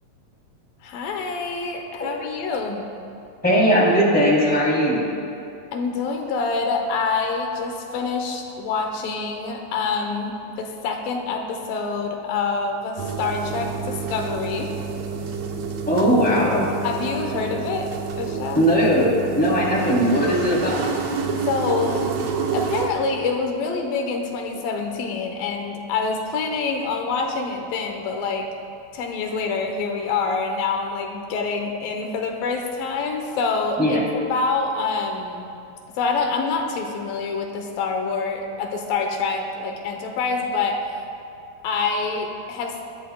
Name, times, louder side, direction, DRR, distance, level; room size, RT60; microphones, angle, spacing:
voice 1, 0.8-2.8 5.7-14.7 16.8-17.9 18.2-18.7 21.4-22.1 22.5-28.5 28.9-35.5 36.0-40.8 41.6-42.8, left 4 dB, 85° left, 3 dB, 2.7 m, -26 dB
voice 2, 3.4-5.0 15.9-16.7 18.5-20.8 33.8-34.0, equal, 5° left, -6 dB, 2.6 m, -19 dB
sound 1, 13.0-22.9, right 5 dB, 70° right, 1.7 m, -29 dB
22.0 x 11.5 x 2.3 m, 2.7 s
omnidirectional pair, 4.0 m